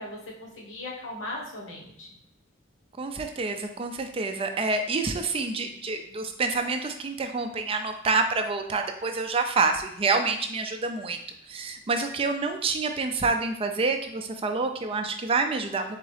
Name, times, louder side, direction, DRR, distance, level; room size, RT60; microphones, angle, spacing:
voice 1, 0.0-2.1, left 1 dB, 70° left, -2 dB, 1.1 m, -38 dB
voice 2, 3.0-11.2 11.5-16.0, right 3 dB, 30° right, 6 dB, 0.4 m, -27 dB
4.0 x 3.5 x 3.2 m, 0.73 s
head